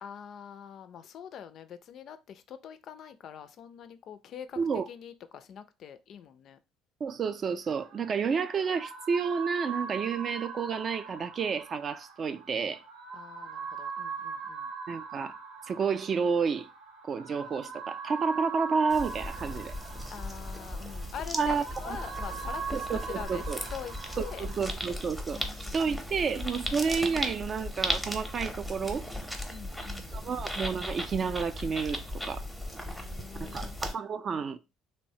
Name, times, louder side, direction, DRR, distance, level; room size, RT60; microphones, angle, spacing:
voice 1, 0.0-6.6 13.1-14.7 20.1-24.5 25.3-26.0 26.2-26.9 29.5-30.5 32.8-33.8, left 8 dB, 55° left, 0.3 m, -45 dB
voice 2, 7.0-12.8 14.9-15.3 15.7-16.7 17.1-19.7 21.3-22.0 22.7-23.6 24.2-25.4 25.7-29.0 30.1-32.4 33.4-34.6, right 5 dB, 40° right, 0.3 m, -30 dB
sound 1, 7.7-24.7, right 6 dB, 85° right, 0.6 m, -42 dB
sound 2, 18.9-33.9, left 1 dB, ahead, 0.6 m, -37 dB
3.1 x 2.1 x 2.7 m
supercardioid pair, 90°, 0 cm